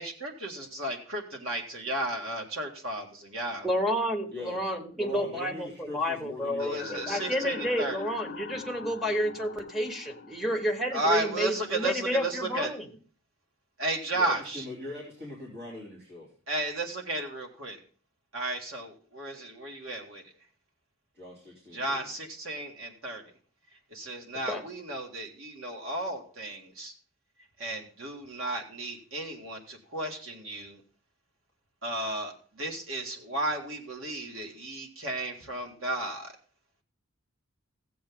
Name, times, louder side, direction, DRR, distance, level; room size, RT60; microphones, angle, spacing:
voice 1, 0.0-3.7 6.6-8.0 10.9-12.7 13.8-14.6 16.5-17.8 18.3-20.2 21.7-23.2 23.9-26.9 27.6-30.8 31.8-36.3, right 1 dB, 75° right, 2 dB, 2.1 m, -33 dB
voice 2, 3.6-12.9 24.3-24.6, equal, ahead, 2 dB, 1.2 m, -30 dB
voice 3, 4.3-7.3 10.4-10.6 14.1-16.3 21.1-22.1, left 2 dB, 55° right, -4 dB, 3.4 m, -42 dB
sound 1, 6.8-11.9, left 5 dB, 45° left, 0.7 m, -44 dB
15.0 x 7.9 x 3.6 m, 0.41 s
head